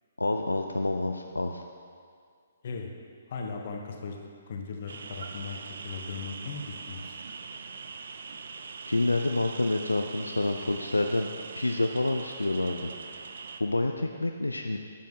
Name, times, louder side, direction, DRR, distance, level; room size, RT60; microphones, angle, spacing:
voice 1, 0.2-1.6 8.9-11.3 11.6-12.9 13.6-14.8, left 2 dB, 80° left, 4 dB, 0.4 m, -28 dB
voice 2, 3.3-4.2 4.5-5.6 5.8-7.2, left 4 dB, 50° left, 2 dB, 1.1 m, -37 dB
sound 1, 4.9-13.6, right 4 dB, 60° right, 0.5 m, -42 dB
10.5 x 7.3 x 3.7 m, 2.1 s
figure-of-eight pair, 130°, 0 cm